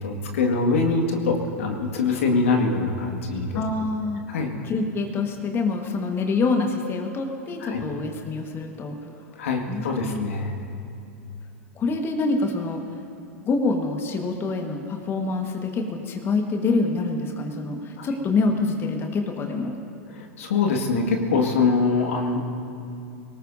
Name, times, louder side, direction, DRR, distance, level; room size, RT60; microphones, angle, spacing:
voice 1, 0.0-3.6 4.3-4.5 7.6-7.8 9.4-10.5 18.0-18.1 20.1-22.4, left 4 dB, 65° left, 2 dB, 2.0 m, -23 dB
voice 2, 3.5-4.2 4.6-8.9 9.7-10.3 11.7-12.8 13.4-19.8, left 3 dB, 30° left, 3 dB, 1.6 m, -26 dB
23.5 x 18.5 x 2.7 m, 2.6 s
figure-of-eight pair, 90°, 8 cm